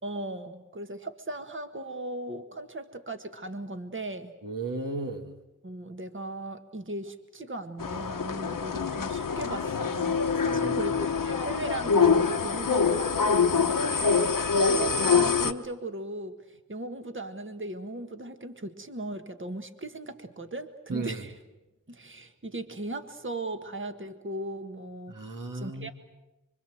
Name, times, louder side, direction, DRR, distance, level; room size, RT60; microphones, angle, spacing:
voice 1, 0.0-4.3 5.6-21.4 21.9-25.1 25.5-25.9, right 2 dB, 35° right, 7 dB, 1.7 m, -37 dB
voice 2, 4.4-5.3 10.4-10.8 20.9-21.2 25.1-25.9, right 3 dB, 75° right, 4 dB, 2.1 m, -34 dB
sound 1, 7.8-15.5, left 5 dB, 75° left, 1.2 m, -25 dB
25.0 x 25.0 x 7.8 m, 1.0 s
wide cardioid pair, 55°, 33 cm